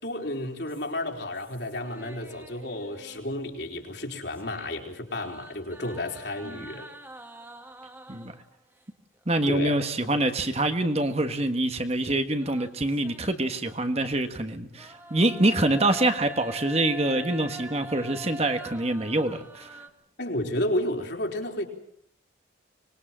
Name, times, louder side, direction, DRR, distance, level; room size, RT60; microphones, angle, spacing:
voice 1, 0.0-6.9 9.5-9.8 20.2-21.7, left 1 dB, 60° left, 2 dB, 4.3 m, -32 dB
sound 1, 0.6-3.5 3.8-8.5 9.3-10.3 10.7-10.8 12.0-14.2 14.7-19.9, equal, 10° right, 2.0 m, -45 dB
voice 2, 9.3-19.8, right 1 dB, 30° right, 7 dB, 1.6 m, -25 dB
25.0 x 21.5 x 7.6 m, 0.68 s
head